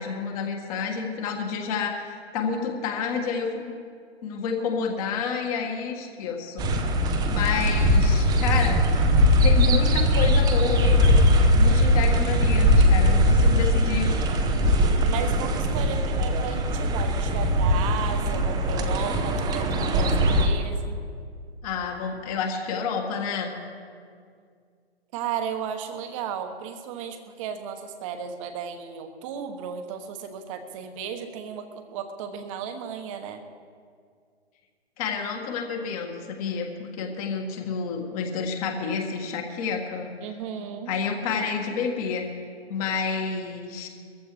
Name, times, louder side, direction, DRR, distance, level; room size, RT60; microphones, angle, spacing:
voice 1, 0.0-3.8 4.2-6.6 7.3-8.8 9.4-11.3 11.5-14.1 21.6-23.5 35.0-40.1 40.9-42.3 42.7-43.9, left 5 dB, 35° left, 2 dB, 1.8 m, -29 dB
sound 1, 6.6-20.5, equal, 10° right, 0.8 m, -20 dB
voice 2, 15.0-21.0 25.1-33.4 40.2-40.9, right 7 dB, 30° right, 7 dB, 1.2 m, -34 dB
22.5 x 14.5 x 3.2 m, 2.2 s
figure-of-eight pair, 120°, 32 cm